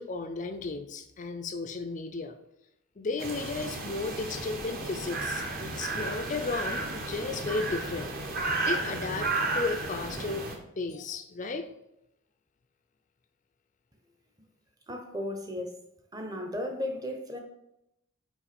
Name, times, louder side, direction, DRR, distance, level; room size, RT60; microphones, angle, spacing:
voice 1, 0.0-2.3 3.0-8.1 8.6-10.4 10.8-11.7, left 3 dB, 35° left, 8 dB, 0.4 m, -34 dB
sound 1, 3.2-10.5, right 2 dB, 40° right, 1.0 m, -33 dB
voice 2, 14.9-15.7 16.1-17.4, left 1 dB, 15° right, 4 dB, 0.8 m, -35 dB
5.6 x 4.6 x 4.2 m, 0.84 s
head